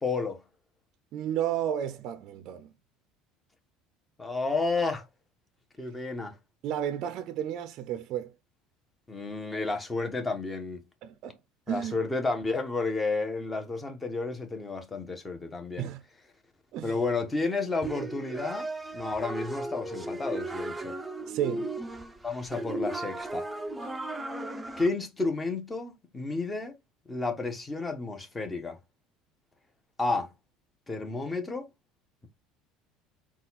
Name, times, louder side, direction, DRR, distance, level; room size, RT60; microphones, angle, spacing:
voice 1, 0.0-0.4 4.2-5.0 5.8-6.4 9.1-10.8 11.7-15.9 16.8-21.0 22.2-23.5 24.8-26.8 27.1-28.8 30.0-30.3 30.9-31.7, left 3 dB, 15° left, 1.1 m, -31 dB
voice 2, 1.1-2.7 6.6-8.3 11.0-11.4 11.7-12.0 15.8-16.0 16.7-17.0 21.3-21.7, right 10 dB, 60° right, 0.5 m, -32 dB
sound 1, 17.8-24.9, right 2 dB, 10° right, 0.5 m, -36 dB
4.0 x 2.4 x 4.0 m
supercardioid pair, 105°, 0 cm